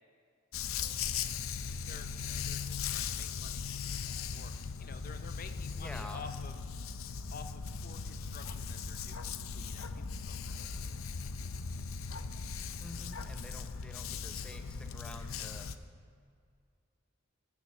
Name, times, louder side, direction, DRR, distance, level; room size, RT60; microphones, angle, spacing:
Dog, 0.5-15.8, left 6 dB, 85° left, 0.6 m, -39 dB
voice 1, 1.8-3.7 4.3-4.5 4.8-6.6 7.3-11.0, left 5 dB, 45° left, 8 dB, 0.6 m, -51 dB
voice 2, 5.8-6.2 12.8-15.7, left 1 dB, 5° left, 5 dB, 0.7 m, -48 dB
15.5 x 7.2 x 6.3 m, 2.2 s
head